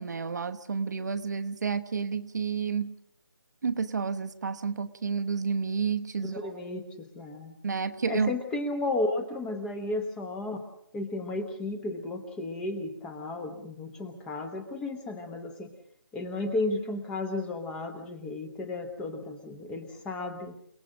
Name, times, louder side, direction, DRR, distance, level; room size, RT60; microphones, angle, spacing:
voice 1, 0.0-2.9 3.6-6.5 7.6-8.3, right 5 dB, 45° right, 8 dB, 1.1 m, -30 dB
voice 2, 6.2-7.5 8.1-10.6 10.9-15.7 16.1-20.6, left 2 dB, 5° left, 7 dB, 1.0 m, -33 dB
29.5 x 18.5 x 6.3 m, 0.72 s
figure-of-eight pair, 165°, 13 cm